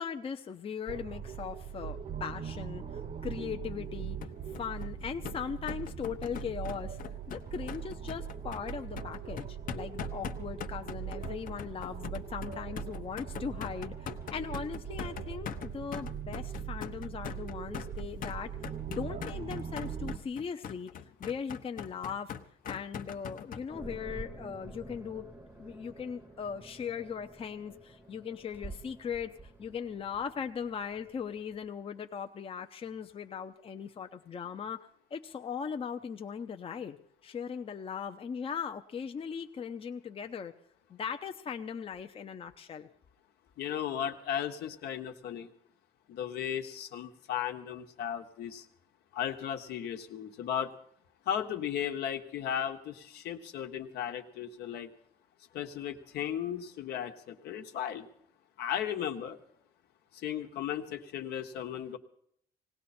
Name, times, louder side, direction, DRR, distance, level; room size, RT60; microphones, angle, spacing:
voice 1, 0.0-2.8 3.2-4.2 4.5-7.0 7.3-18.5 18.9-20.9 21.2-22.3 22.6-25.3 25.6-29.3 29.6-34.8 35.1-37.0 37.2-40.5 40.9-42.9, left 7 dB, 35° left, 5 dB, 0.8 m, -39 dB
sound 1, 0.9-20.2, right 8 dB, 45° right, 0.9 m, -41 dB
sound 2, 4.2-23.6, left 8 dB, 55° left, 1.0 m, -42 dB
sound 3, 23.7-31.7, right 2 dB, 10° right, 0.9 m, -49 dB
voice 2, 43.6-45.5 46.1-48.7 49.1-50.7 51.2-54.9 55.5-58.1 58.6-59.4 60.1-62.0, left 9 dB, 75° left, 5 dB, 1.4 m, -35 dB
19.0 x 17.0 x 4.3 m, 0.68 s
cardioid pair, 110°, 17 cm